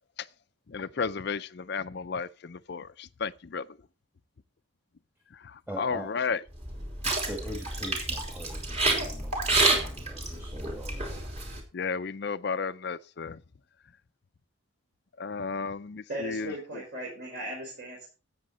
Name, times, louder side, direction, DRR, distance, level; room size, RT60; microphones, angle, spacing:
voice 1, 0.7-3.6 5.4-6.4 11.7-13.4 15.2-16.5, left 5 dB, 50° left, 0.5 m, -33 dB
voice 2, 5.7-6.1 7.1-11.2, equal, 10° right, 1.8 m, -42 dB
sound 1, 6.5-11.6, right 2 dB, 30° right, 3.1 m, -29 dB
voice 3, 16.1-18.1, right 1 dB, 55° right, 5.0 m, -37 dB
13.5 x 8.5 x 4.0 m
head